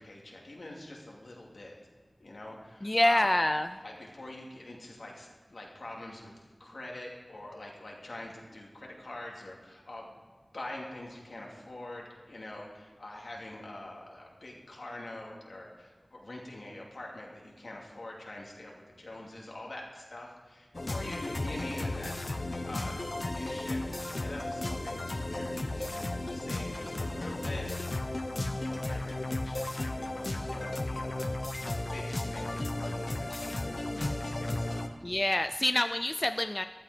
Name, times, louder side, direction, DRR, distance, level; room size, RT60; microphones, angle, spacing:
voice 1, 0.0-1.8 2.2-3.3 3.8-6.3 6.6-10.1 10.5-22.2 22.6-23.0 23.3-27.7 28.6-31.3 31.9-34.9, left 1 dB, 85° left, -2 dB, 2.7 m, -45 dB
voice 2, 2.8-3.7 35.0-36.7, left 1 dB, 30° left, 9 dB, 0.4 m, -26 dB
sound 1, 20.7-34.9, left 2 dB, 55° left, 1.0 m, -34 dB
14.0 x 12.0 x 5.1 m, 1.3 s
wide cardioid pair, 55°, 0 cm